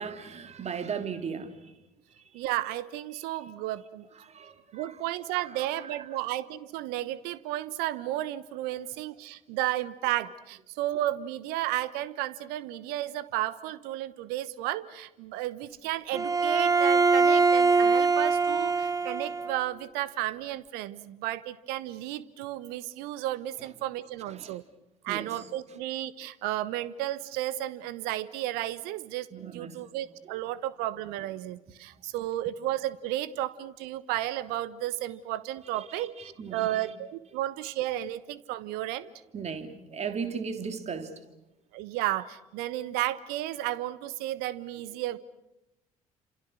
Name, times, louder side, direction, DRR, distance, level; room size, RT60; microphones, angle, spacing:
voice 1, 0.0-1.7 2.1-2.4 4.2-5.0 5.5-6.2 23.6-23.7 24.2-24.5 25.1-25.4 29.3-29.8 30.3-30.4 35.7-36.9 39.3-41.1, right 6 dB, 40° right, 3.2 m, -38 dB
voice 2, 2.3-4.1 4.7-24.6 25.0-39.1 41.7-45.2, right 14 dB, 60° right, 1.1 m, -33 dB
Bowed string instrument, 16.1-19.6, right 4 dB, 20° right, 2.2 m, -23 dB
29.5 x 27.5 x 6.4 m
figure-of-eight pair, 55°, 18 cm